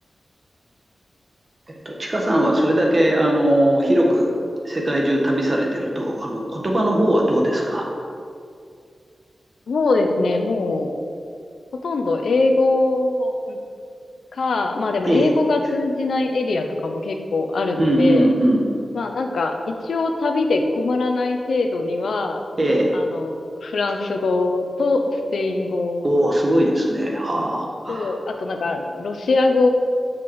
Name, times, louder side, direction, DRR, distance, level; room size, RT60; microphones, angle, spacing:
voice 1, 1.8-4.3 4.6-7.8 15.1-15.3 17.8-18.6 22.6-22.9 26.0-28.1, right 1 dB, 30° right, -1 dB, 1.4 m, -19 dB
voice 2, 9.7-10.9 11.8-13.6 14.3-18.3 18.9-19.5 19.8-22.4 22.9-26.0 27.9-29.7, left 3 dB, 85° left, 4 dB, 0.8 m, -22 dB
6.8 x 5.9 x 6.3 m, 2.3 s
wide cardioid pair, 130°, 0 cm